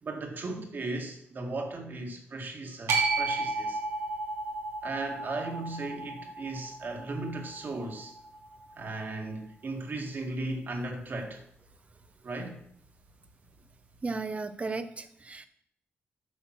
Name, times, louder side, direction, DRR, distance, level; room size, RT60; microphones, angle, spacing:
voice 1, 0.0-3.8 4.8-8.1 8.8-11.4 12.2-12.6, right 2 dB, 50° right, 3 dB, 2.1 m, -36 dB
sound 1, 2.9-9.1, right 3 dB, 85° right, 1.8 m, -34 dB
voice 2, 14.0-15.5, right 3 dB, 30° right, 11 dB, 0.9 m, -35 dB
8.6 x 5.8 x 6.0 m, 0.68 s
cardioid pair, 75°, 4 cm